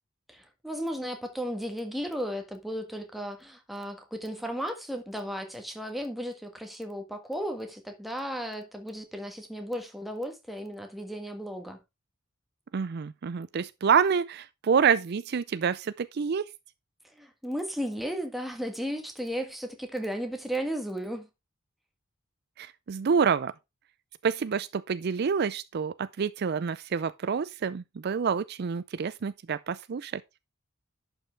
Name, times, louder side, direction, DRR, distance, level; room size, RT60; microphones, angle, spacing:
voice 1, 0.3-11.8 17.1-21.3, equal, ahead, 1.6 m, -35 dB
voice 2, 12.7-16.5 22.6-23.5 24.2-30.2, right 6 dB, 55° right, 0.4 m, -27 dB
11.0 x 5.8 x 3.3 m
head